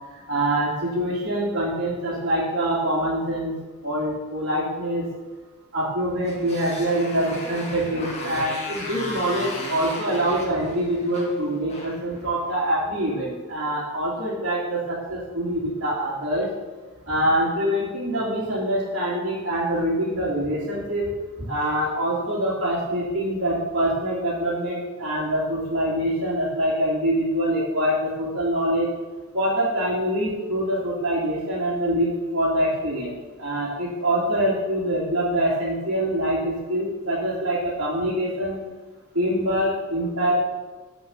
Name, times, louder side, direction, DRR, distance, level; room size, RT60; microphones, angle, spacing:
voice 1, 0.3-3.5 3.8-5.1 5.7-16.5 17.1-21.1 21.4-28.9 29.3-38.6 39.1-40.4, right 1 dB, 60° right, -10 dB, 3.0 m, -25 dB
Motorcycle, 6.2-12.7, left 1 dB, 30° left, 2.2 m, -36 dB
11.0 x 5.3 x 7.4 m, 1.2 s
head